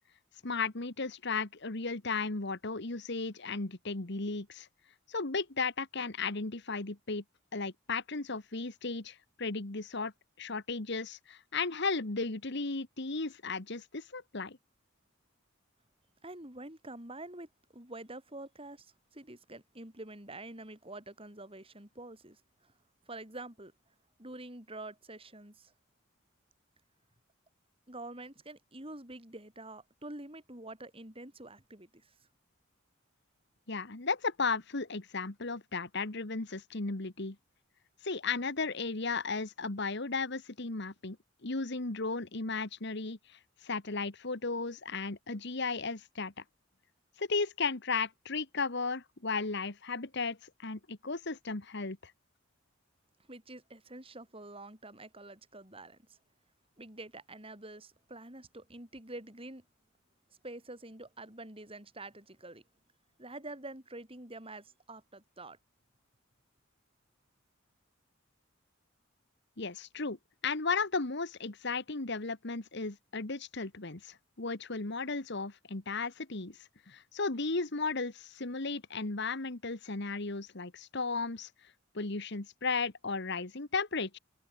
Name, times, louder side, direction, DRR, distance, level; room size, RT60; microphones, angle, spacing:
voice 1, 0.4-4.7 5.1-7.2 7.5-10.1 10.4-14.6 33.7-37.4 38.0-41.2 41.4-46.3 47.2-52.1 69.6-70.2 70.4-76.6 76.9-81.5 81.9-84.2, left 4 dB, 55° left, 1.6 m, -35 dB
voice 2, 16.2-22.7 23.1-23.7 24.2-25.7 27.9-32.1 53.3-56.2 56.8-59.6 60.4-62.6 63.2-65.6, right 2 dB, 25° right, 7.4 m, -47 dB
head